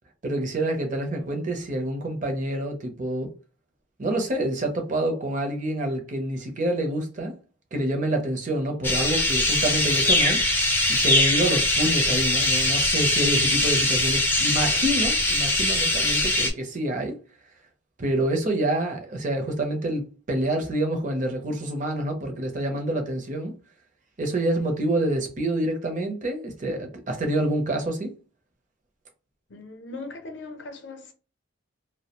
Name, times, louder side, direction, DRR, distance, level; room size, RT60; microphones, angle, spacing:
voice 1, 0.2-3.3 4.0-7.3 7.7-17.2 18.0-20.0 20.3-23.5 24.2-28.1, right 1 dB, 40° right, 0.6 m, -27 dB
sound 1, 8.8-16.5, left 1 dB, 10° left, 0.4 m, -22 dB
voice 2, 29.5-31.1, left 3 dB, 60° left, 0.6 m, -39 dB
2.3 x 2.1 x 2.8 m
head